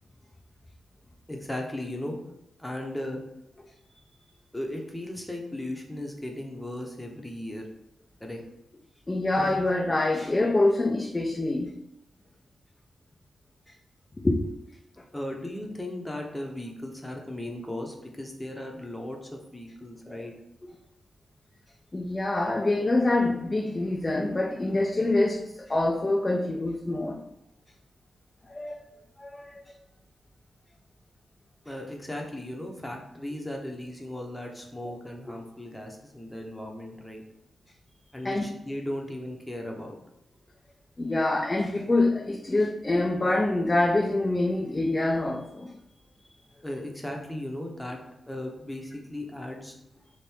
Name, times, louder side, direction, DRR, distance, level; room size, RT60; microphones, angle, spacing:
voice 1, 1.3-2.2 2.6-3.2 4.5-7.7 8.2-8.4 15.1-20.3 31.7-37.2 38.1-40.0 46.6-48.0 48.3-49.7, left 1 dB, 10° left, 1 dB, 0.8 m, -36 dB
voice 2, 9.1-11.7 14.2-14.6 20.1-20.3 20.6-20.8 21.9-27.2 28.5-28.8 29.2-29.6 34.8-34.9 38.2-38.4 41.0-45.7, left 2 dB, 25° left, 0 dB, 0.4 m, -25 dB
3.5 x 2.5 x 4.5 m, 0.84 s
cardioid pair, 90°, 0 cm